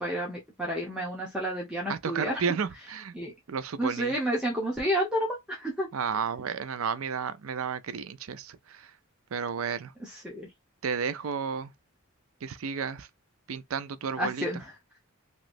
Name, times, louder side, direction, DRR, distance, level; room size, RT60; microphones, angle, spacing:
voice 1, 0.0-2.3 3.1-3.3 3.8-5.9 10.2-10.5 14.2-14.6, equal, 5° right, 1.0 m, -30 dB
voice 2, 1.9-3.1 3.5-4.1 5.9-8.9 9.3-9.9 10.8-11.7 12.4-13.1 13.5-14.5, right 6 dB, 75° right, 0.5 m, -32 dB
3.1 x 3.0 x 2.5 m
head